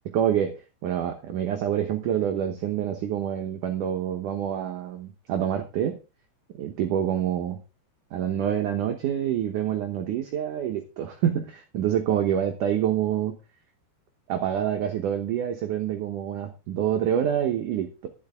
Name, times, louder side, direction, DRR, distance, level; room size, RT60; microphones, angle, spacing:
voice 1, 0.1-6.0 6.5-7.6 8.1-13.4 14.3-18.1, right 9 dB, 70° right, 4 dB, 1.9 m, -27 dB
11.0 x 10.5 x 3.7 m, 0.31 s
omnidirectional pair, 5.1 m